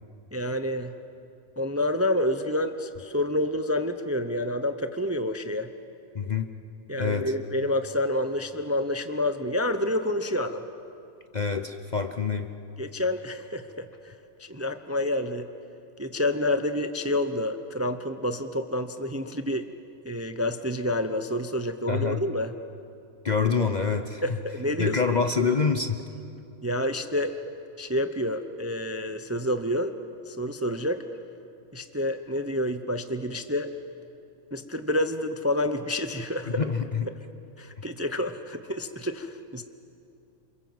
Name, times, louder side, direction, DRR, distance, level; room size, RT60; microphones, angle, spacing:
voice 1, 0.3-0.9 1.6-5.7 6.9-10.6 12.8-14.1 14.4-15.5 16.0-19.6 20.0-22.5 24.2-25.0 26.6-27.4 27.8-29.9 30.3-31.0 31.7-33.7 34.5-36.6 37.6-39.6, left 1 dB, 15° right, 8 dB, 0.6 m, -28 dB
voice 2, 6.1-6.5 7.0-7.3 11.3-12.5 21.9-22.2 23.2-24.2 24.8-26.0 36.5-37.1, left 5 dB, 40° left, 7 dB, 0.8 m, -26 dB
29.0 x 26.5 x 7.8 m, 2.6 s
omnidirectional pair, 1.5 m